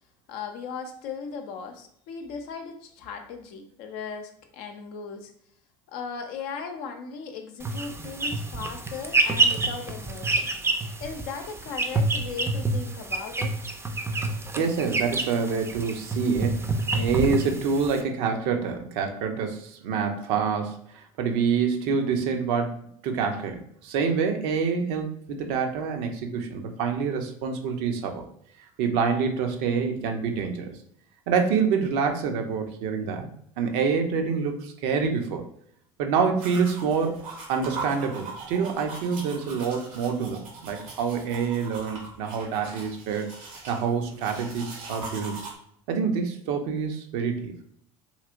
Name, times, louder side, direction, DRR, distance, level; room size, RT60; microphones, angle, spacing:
voice 1, 0.3-5.3 5.9-10.5 11.0-13.6, left 5 dB, 65° left, 5 dB, 0.6 m, -37 dB
sound 1, 7.6-18.0, right 3 dB, 15° right, 0.5 m, -28 dB
voice 2, 14.6-28.2 28.8-30.8 31.3-33.3 33.6-35.4 36.0-43.3 43.7-45.4 45.9-47.5, right 5 dB, 70° right, 4 dB, 0.6 m, -27 dB
sound 2, 36.4-45.5, right 3 dB, 85° right, 1.2 m, -41 dB
3.2 x 2.8 x 2.5 m, 0.68 s
hypercardioid pair, 70°, 17 cm